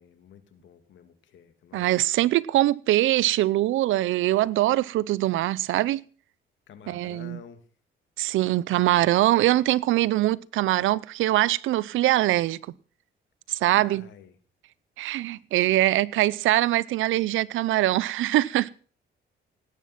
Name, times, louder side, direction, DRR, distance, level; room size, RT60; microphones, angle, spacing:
voice 1, 0.0-1.9 6.7-7.6 13.7-14.4, left 8 dB, 70° left, 2.2 m, -49 dB
voice 2, 1.7-6.0 6.9-7.4 8.2-12.6 13.5-14.1 15.0-18.7, right 15 dB, 85° right, 0.6 m, -23 dB
18.0 x 9.4 x 5.9 m
cardioid pair, 90°, 20 cm